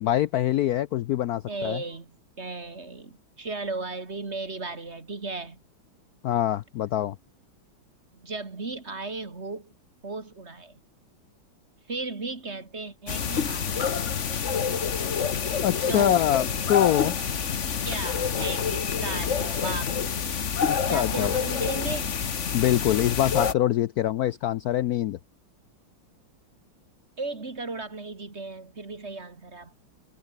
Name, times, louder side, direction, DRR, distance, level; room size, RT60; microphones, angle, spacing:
voice 1, 0.0-1.8 6.2-7.2 15.6-17.1 20.6-21.3 22.5-25.2, left 12 dB, 80° left, 0.8 m, -24 dB
voice 2, 1.5-5.6 8.1-9.7 10.0-10.8 11.9-13.9 15.9-16.2 17.8-19.9 20.9-22.1 27.2-29.7, right 3 dB, 30° right, 2.6 m, -35 dB
sound 1, 13.1-23.5, left 7 dB, 40° left, 1.4 m, -27 dB
omnidirectional pair, 2.2 m